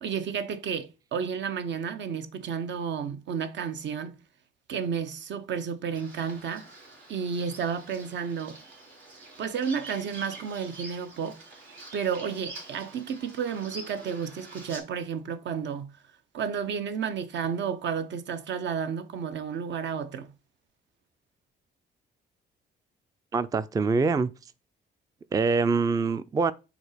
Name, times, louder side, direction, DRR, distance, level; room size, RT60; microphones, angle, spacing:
voice 1, 0.0-4.1 4.7-6.7 7.1-8.6 9.4-11.4 11.9-15.9 16.3-20.3, right 6 dB, 65° right, 0.8 m, -32 dB
Bird vocalization bird call bird song, 5.9-14.8, right 2 dB, 85° right, 2.6 m, -46 dB
voice 2, 23.3-24.3 25.3-26.5, right 4 dB, 20° right, 0.3 m, -24 dB
5.1 x 3.9 x 4.9 m
cardioid pair, 90°, 20 cm